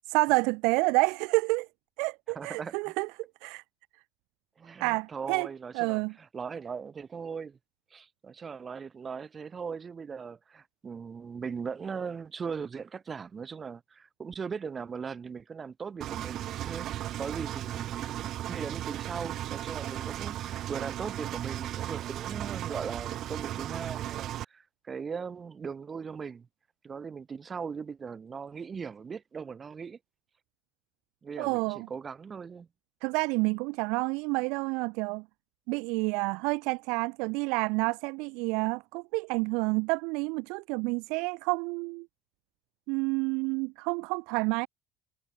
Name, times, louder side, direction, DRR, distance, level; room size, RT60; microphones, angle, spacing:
voice 1, 0.1-1.7 2.0-3.1 3.4-3.6 4.8-5.5 5.7-6.1 31.4-31.9 33.0-35.2 35.7-42.1 42.9-44.7, right 29 dB, 90° right, 1.4 m, -29 dB
voice 2, 2.3-2.9 4.6-7.6 7.9-26.5 26.8-30.0 31.2-32.7, right 6 dB, 25° right, 1.5 m, -39 dB
Engine, 16.0-24.4, right 12 dB, 50° right, 1.2 m, -36 dB
cardioid pair, 150°, 0 cm